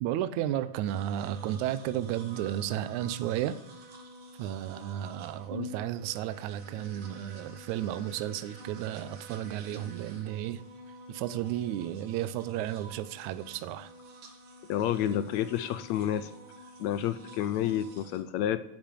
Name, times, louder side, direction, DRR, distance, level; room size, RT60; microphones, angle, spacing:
voice 1, 0.0-3.6 4.4-10.6 11.1-13.9, right 12 dB, 75° right, 11 dB, 2.0 m, -33 dB
sound 1, 0.9-18.2, left 1 dB, 45° right, 2.4 m, -48 dB
voice 2, 14.7-16.3 16.8-18.6, left 11 dB, 75° left, 13 dB, 1.7 m, -29 dB
11.5 x 10.5 x 9.1 m, 0.82 s
omnidirectional pair, 3.6 m